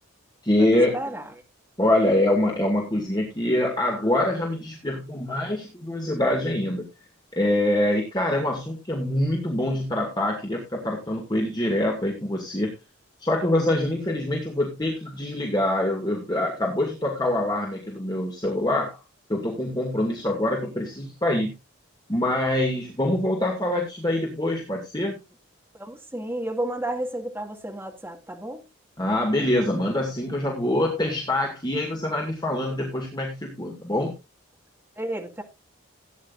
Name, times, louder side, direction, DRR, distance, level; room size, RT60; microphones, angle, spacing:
voice 1, 0.4-1.0 1.8-6.8 7.4-12.7 13.2-19.0 19.3-21.5 22.1-25.1 29.0-34.1, left 1 dB, 20° left, 2.3 m, -25 dB
voice 2, 0.9-1.3 25.7-28.6 35.0-35.4, right 1 dB, 10° right, 2.0 m, -32 dB
16.5 x 9.6 x 2.6 m
head